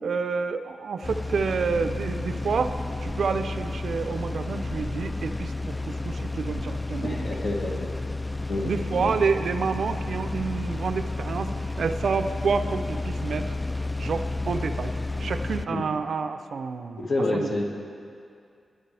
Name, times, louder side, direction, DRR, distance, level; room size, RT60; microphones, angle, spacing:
voice 1, 0.0-7.3 8.6-13.6 14.0-14.9 15.2-17.0 17.3-17.5, right 5 dB, 75° right, 9 dB, 0.5 m, -29 dB
sound 1, 1.0-15.7, left 2 dB, 15° left, 0.4 m, -31 dB
voice 2, 7.0-7.9 8.5-9.1 15.7-15.9 17.0-17.6, left 2 dB, 60° left, -1 dB, 1.8 m, -28 dB
19.0 x 10.5 x 3.4 m, 2.3 s
cardioid pair, 85°, 0 cm